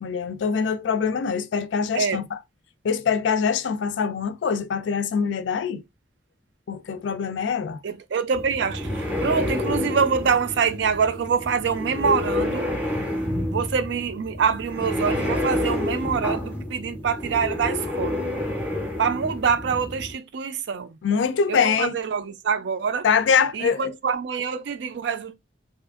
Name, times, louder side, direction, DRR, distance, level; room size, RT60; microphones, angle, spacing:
voice 1, 0.0-2.2 2.8-5.8 6.7-7.8 21.0-21.9 23.0-23.9, left 6 dB, 75° left, 0.3 m, -24 dB
voice 2, 1.9-2.3 7.8-12.7 13.5-18.2 19.0-21.0 21.5-23.1 23.5-25.3, right 6 dB, 70° right, 0.3 m, -25 dB
sound 1, 8.3-20.1, left 1 dB, 10° right, 0.5 m, -29 dB
2.7 x 2.4 x 2.3 m
head